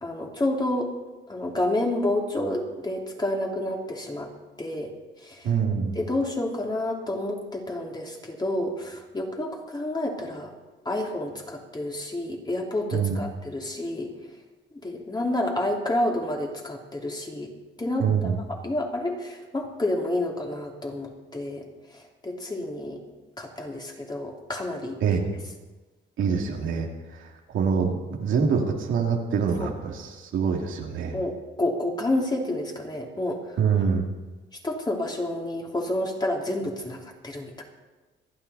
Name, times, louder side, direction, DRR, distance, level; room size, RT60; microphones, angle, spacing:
voice 1, 0.0-0.9 1.3-4.3 4.6-4.9 5.2-5.5 5.9-10.5 10.8-14.2 14.7-23.0 23.4-25.2 29.6-29.7 31.1-33.6 34.6-37.6, left 1 dB, 20° left, 0 dB, 3.0 m, -29 dB
voice 2, 5.4-5.9 12.9-13.2 18.0-18.3 25.0-25.4 26.2-31.2 33.6-34.1, right 6 dB, 80° right, 0 dB, 2.6 m, -25 dB
26.0 x 9.2 x 4.2 m, 1.2 s
cardioid pair, 90°, 20 cm